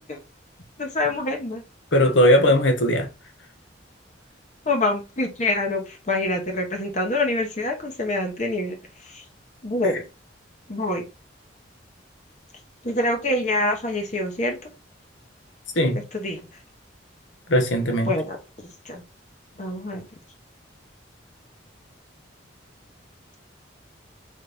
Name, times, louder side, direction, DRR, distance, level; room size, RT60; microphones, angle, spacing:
voice 1, 0.8-1.6 4.7-8.8 9.1-9.2 9.6-10.0 10.7-11.0 12.8-14.7 16.1-16.4 18.1-18.4 18.8-19.0 19.6-20.0, left 2 dB, 40° left, 0.9 m, -25 dB
voice 2, 1.9-3.1 15.8-16.0 17.5-18.1, equal, 70° left, 1.1 m, -18 dB
4.0 x 3.2 x 3.3 m
head